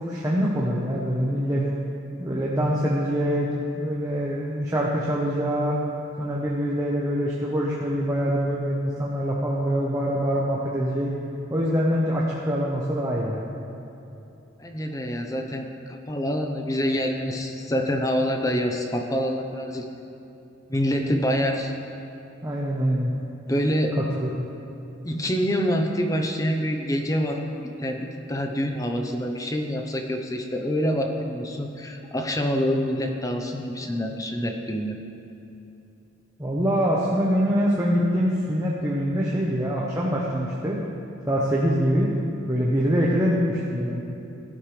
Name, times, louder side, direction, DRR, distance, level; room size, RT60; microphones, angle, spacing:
voice 1, 0.0-1.6 2.2-5.8 6.2-11.1 11.5-13.5 22.4-23.1 24.2-24.4 36.4-40.8 41.3-42.1 42.5-44.0, equal, 15° right, -5 dB, 1.0 m, -24 dB
voice 2, 14.6-19.9 20.7-21.7 23.5-24.0 25.0-35.0, equal, 15° left, 3 dB, 0.8 m, -26 dB
16.0 x 12.0 x 3.4 m, 2.9 s
head